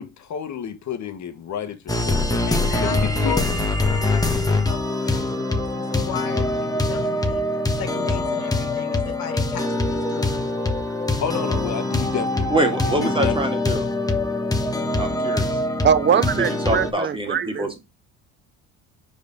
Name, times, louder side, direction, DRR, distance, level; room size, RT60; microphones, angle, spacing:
voice 1, 0.0-2.4 2.8-3.4 11.2-13.3, left 8 dB, 50° left, 1.5 m, -30 dB
sound 1, 1.9-16.9, left 2 dB, 10° left, 1.4 m, -23 dB
voice 2, 2.5-7.4 7.8-10.3, left 8 dB, 65° left, 1.8 m, -35 dB
voice 3, 12.5-13.9 15.0-15.5 16.1-17.8, right 1 dB, 15° right, 2.3 m, -25 dB
voice 4, 15.6-17.8, right 8 dB, 30° right, 0.7 m, -22 dB
5.2 x 5.0 x 5.3 m
supercardioid pair, 90°, 37 cm